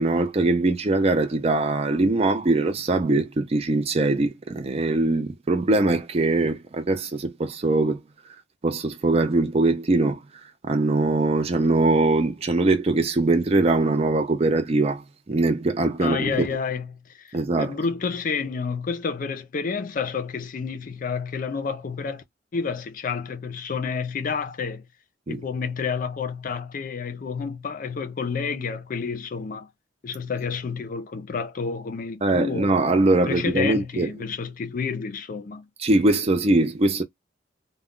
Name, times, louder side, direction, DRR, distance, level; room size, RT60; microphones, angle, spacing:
voice 1, 0.0-8.0 8.6-10.2 10.6-16.5 17.3-17.7 25.3-25.4 32.2-34.1 35.8-37.0, right 2 dB, 35° right, 0.4 m, -22 dB
voice 2, 16.0-22.2 22.5-24.8 25.3-29.7 30.0-32.7 33.3-35.7, left 5 dB, 45° left, 0.4 m, -30 dB
2.3 x 2.1 x 3.6 m
head